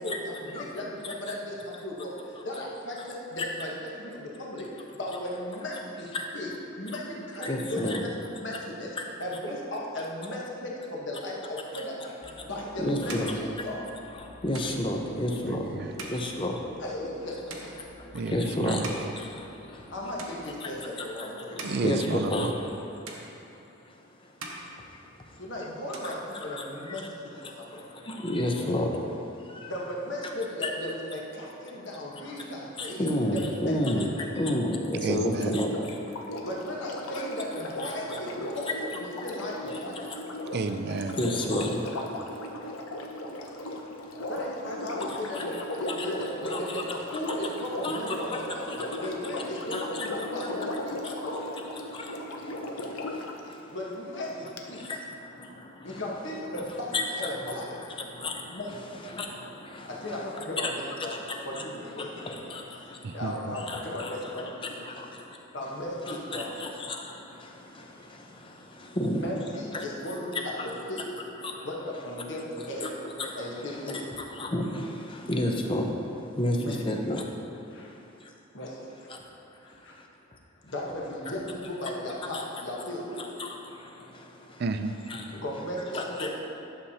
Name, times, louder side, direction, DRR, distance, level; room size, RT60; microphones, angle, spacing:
voice 1, 0.0-2.2 2.4-3.7 4.0-6.5 6.8-8.1 8.4-8.9 9.2-12.2 12.5-13.9 16.8-17.8 19.9-21.8 25.4-27.8 29.7-34.0 36.4-39.9 44.3-51.5 53.7-54.9 55.8-57.7 58.5-58.9 59.8-61.1 61.4-62.3 62.8-64.7 65.5-66.7 69.1-71.1 71.6-73.0 73.3-74.0 76.6-76.8 77.7-77.9 78.5-79.1 79.6-79.9 80.6-83.2 85.3-86.4, left 1 dB, 55° left, -3 dB, 1.2 m, -36 dB
voice 2, 7.4-8.0 12.8-13.3 14.4-15.6 16.1-16.6 18.3-18.8 21.8-22.5 28.2-28.9 30.6-30.7 33.0-34.1 34.4-35.7 37.8-37.9 41.2-41.7 45.3-45.4 46.5-46.8 47.8-48.0 48.3-48.4 49.7-50.1 54.9-55.0 56.9-57.3 58.2-58.3 59.2-59.3 60.6-60.7 61.6-61.7 62.3-62.6 63.7-64.1 66.1-66.7 69.0-69.2 69.7-69.8 72.8-72.9 73.2-73.3 74.4-74.6 75.3-75.9 76.4-77.2 82.3-82.4 83.4-83.5 85.1-85.2 85.9-86.3, left 1 dB, 25° left, 2 dB, 0.6 m, -29 dB
sound 1, 12.2-20.2, equal, 10° left, 0.9 m, -52 dB
sound 2, 12.2-19.9 20.2-20.9 21.3-22.8 23.1-23.9 24.2-25.5 25.7-26.8, right 2 dB, 85° right, 1.1 m, -45 dB
voice 3, 15.5-15.9 18.1-18.9 21.6-22.5 35.0-35.6 40.5-41.2 63.0-63.6 84.6-84.9, right 3 dB, 50° right, 8 dB, 0.4 m, -31 dB
Sink (filling or washing), 35.6-53.4 54.6-54.7, left 1 dB, 85° left, 0.7 m, -37 dB
11.5 x 6.8 x 2.8 m, 2.8 s
head